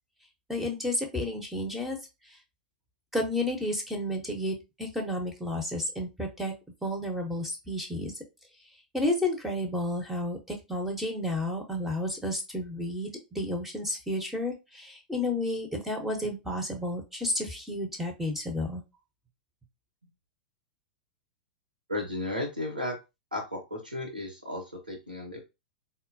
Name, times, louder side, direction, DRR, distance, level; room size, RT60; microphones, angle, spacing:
voice 1, 0.5-2.0 2.3-2.4 3.1-6.5 6.8-8.1 8.9-18.8, left 1 dB, 5° right, 2 dB, 0.7 m, -31 dB
voice 2, 21.9-23.0 23.3-25.4, left 1 dB, 85° right, 1 dB, 0.8 m, -34 dB
4.1 x 2.2 x 2.6 m, 0.26 s
figure-of-eight pair, 95°, 5 cm